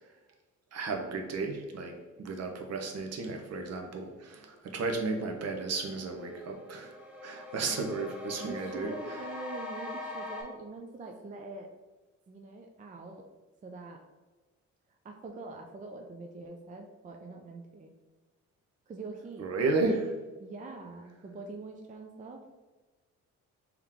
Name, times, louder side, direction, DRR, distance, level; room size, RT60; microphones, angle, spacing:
voice 1, 0.7-6.9 7.2-9.2 19.4-20.2, right 3 dB, 55° right, 3 dB, 0.7 m, -33 dB
sound 1, 4.6-4.7 5.1-10.4, left 2 dB, 5° right, 0.9 m, -43 dB
voice 2, 8.4-11.7 12.3-13.3 13.6-14.0 15.0-17.9 18.9-19.5 20.4-22.4, right 3 dB, 25° right, 3 dB, 0.4 m, -44 dB
3.6 x 3.0 x 3.5 m, 1.2 s
cardioid pair, 90°, 30 cm